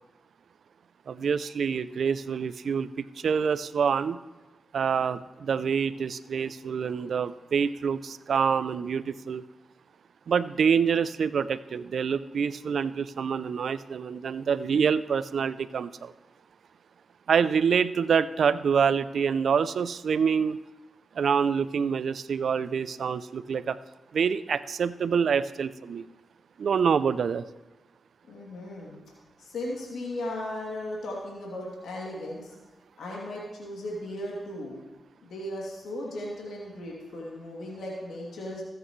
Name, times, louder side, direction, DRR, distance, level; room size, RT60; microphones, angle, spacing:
voice 1, 1.1-2.9 3.2-4.2 4.7-9.4 10.3-16.1 17.3-20.6 21.2-23.8 24.1-26.1 26.6-27.4, right 6 dB, 75° right, 15 dB, 0.4 m, -26 dB
voice 2, 28.3-29.0 29.4-32.5 33.0-34.8 35.2-38.6, left 1 dB, 85° left, -4 dB, 2.8 m, -36 dB
19.0 x 8.8 x 3.2 m, 1.2 s
cardioid pair, 55°, 0 cm